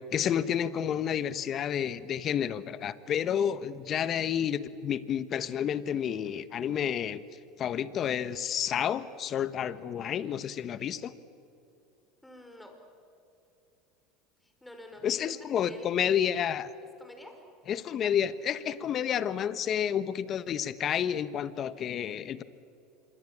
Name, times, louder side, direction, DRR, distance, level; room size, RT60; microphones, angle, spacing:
voice 1, 0.1-7.2 7.6-11.1 15.0-16.7 17.7-22.4, left 9 dB, 40° left, 14 dB, 1.3 m, -30 dB
voice 2, 12.2-12.8 14.4-16.1 17.0-17.4 18.0-18.1, left 1 dB, 5° left, 4 dB, 5.3 m, -49 dB
26.0 x 23.5 x 8.8 m, 2.7 s
supercardioid pair, 100°, 0 cm